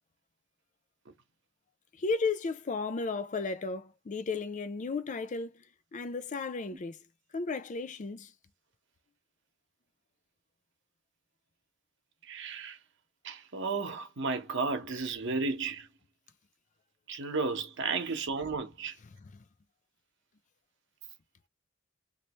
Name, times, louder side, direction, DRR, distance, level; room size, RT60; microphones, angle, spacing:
voice 1, 2.0-5.6 5.9-7.0 7.3-8.3 19.2-19.4, left 4 dB, 35° left, 0.4 m, -34 dB
voice 2, 12.3-12.8 13.2-15.9 17.1-19.0, right 4 dB, 60° right, 1.0 m, -33 dB
3.3 x 2.7 x 3.1 m
head